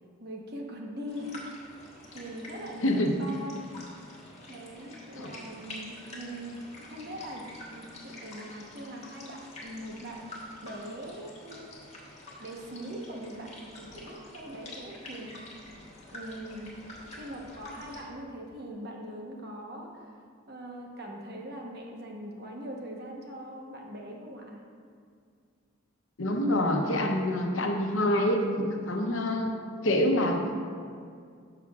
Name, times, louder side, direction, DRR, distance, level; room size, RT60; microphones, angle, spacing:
voice 1, 0.2-1.5 2.1-3.7 4.5-10.2 10.6-11.7 12.4-15.4 16.1-16.7 17.2-20.1 20.5-24.6, equal, 50° right, 0 dB, 1.1 m, -41 dB
sound 1, 1.1-18.0, left 1 dB, 35° left, 1.4 m, -47 dB
voice 2, 2.8-3.2 5.2-5.3 26.2-29.5 29.8-30.6, left 1 dB, 75° left, 3 dB, 0.8 m, -26 dB
12.0 x 5.8 x 2.4 m, 2.2 s
head